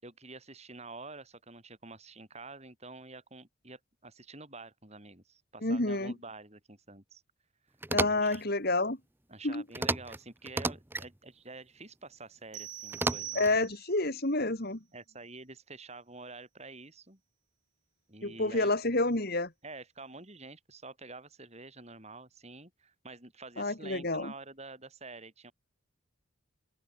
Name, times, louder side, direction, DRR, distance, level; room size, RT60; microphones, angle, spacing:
voice 1, 0.0-7.2 8.1-8.4 9.3-13.7 14.9-17.2 18.1-18.7 19.6-25.5, right 3 dB, 30° right, 5.1 m, -48 dB
voice 2, 5.6-6.1 7.9-9.0 9.4-9.6 13.3-14.8 18.2-19.5 23.6-24.3, left 2 dB, 45° left, 2.6 m, -29 dB
sound 1, 7.8-8.4 9.7-10.2 10.4-11.1 12.9-13.6, right 2 dB, 10° right, 0.7 m, -32 dB
sound 2, 12.5-14.1, right 12 dB, 60° right, 2.5 m, -43 dB
open air
head